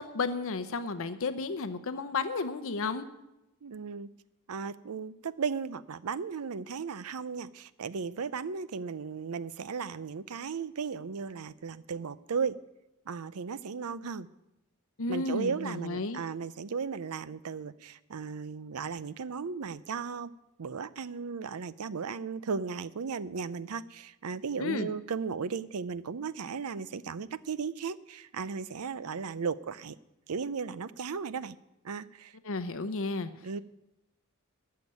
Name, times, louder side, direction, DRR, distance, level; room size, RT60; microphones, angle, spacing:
voice 1, 0.0-3.1 15.0-16.2 24.6-24.9 32.4-33.3, left 3 dB, 65° left, 11 dB, 0.8 m, -32 dB
voice 2, 3.6-4.1 4.5-12.6 13.1-14.3 15.1-20.3 20.6-30.0 30.3-31.6 31.8-32.4 33.4-33.6, right 5 dB, 80° right, 16 dB, 0.6 m, -36 dB
13.0 x 6.7 x 9.5 m, 0.93 s
head